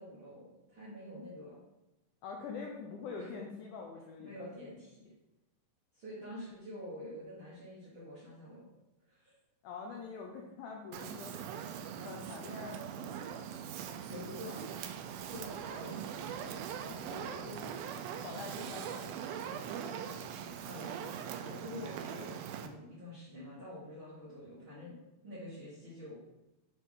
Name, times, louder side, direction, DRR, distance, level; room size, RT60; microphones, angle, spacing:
voice 1, 0.0-1.6 3.2-3.3 4.2-5.1 5.9-8.6 9.1-9.3 13.7-14.7 15.3-15.9 20.7-24.9 25.2-26.1, left 1 dB, 60° right, -9 dB, 1.3 m, -47 dB
voice 2, 2.2-4.5 9.6-11.4 12.0-13.1 17.0-17.7 18.2-19.2 19.8-19.9, left 5 dB, 85° left, 0 dB, 1.8 m, -45 dB
Fire, 10.9-22.7, right 8 dB, 85° right, 2.3 m, -41 dB
8.1 x 3.1 x 3.7 m, 0.96 s
omnidirectional pair, 4.2 m